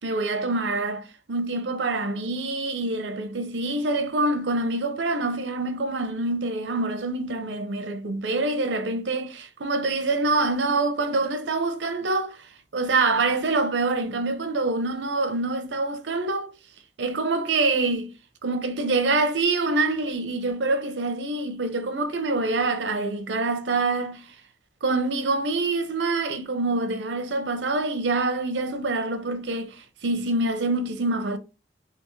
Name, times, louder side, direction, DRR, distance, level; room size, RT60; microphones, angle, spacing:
voice 1, 0.0-12.5 12.7-16.5 17.0-18.1 18.4-24.3 24.8-31.4, right 3 dB, 80° right, 0.7 m, -26 dB
3.5 x 2.9 x 3.1 m
head